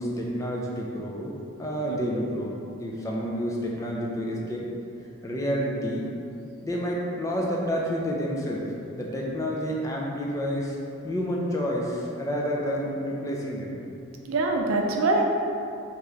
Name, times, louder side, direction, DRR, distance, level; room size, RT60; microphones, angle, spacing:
voice 1, 0.0-1.3 1.6-2.5 2.8-4.7 5.2-6.0 6.6-8.7 8.9-10.8 11.0-13.7, equal, 15° left, -3 dB, 0.3 m, -29 dB
voice 2, 14.3-15.2, right 2 dB, 85° right, 2 dB, 0.4 m, -24 dB
3.5 x 2.9 x 3.3 m, 2.6 s
head